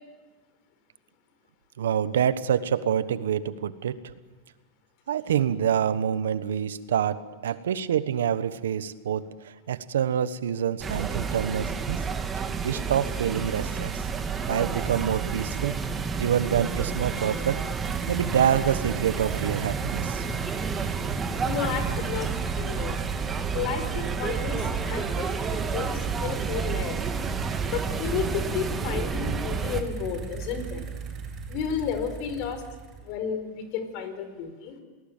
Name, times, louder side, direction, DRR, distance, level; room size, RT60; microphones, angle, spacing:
voice 1, 1.8-4.0 5.1-9.2 9.7-12.0 12.6-14.0 14.5-15.8 16.2-17.6 18.1-20.3, right 9 dB, 85° right, 14 dB, 1.2 m, -26 dB
sound 1, 10.8-29.8, right 5 dB, 25° right, 2.6 m, -30 dB
sound 2, 17.2-33.1, right 4 dB, 40° right, 6.4 m, -37 dB
voice 2, 21.4-23.0 23.5-27.0 27.7-30.8 31.5-32.6 33.0-34.7, left 7 dB, 60° left, 9 dB, 4.9 m, -32 dB
28.5 x 19.0 x 9.0 m, 1.3 s
hypercardioid pair, 105°, 0 cm